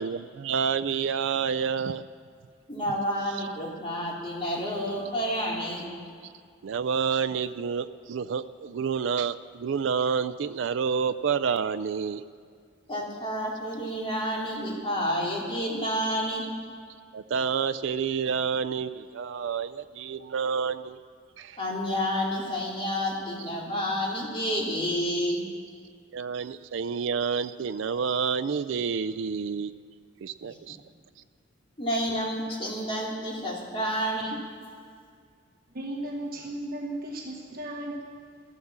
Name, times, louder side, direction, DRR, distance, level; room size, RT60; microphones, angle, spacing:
voice 1, 0.0-2.1 6.2-6.3 6.6-12.2 17.1-21.0 21.4-21.6 25.3-25.4 26.1-29.7 30.2-30.8, right 6 dB, 65° right, 11 dB, 0.4 m, -29 dB
voice 2, 2.7-5.9 12.9-16.4 21.6-25.5 31.8-34.4, equal, 25° left, -3 dB, 3.0 m, -29 dB
voice 3, 35.7-38.0, right 1 dB, 50° right, 0 dB, 1.4 m, -35 dB
14.5 x 13.0 x 7.3 m, 2.2 s
head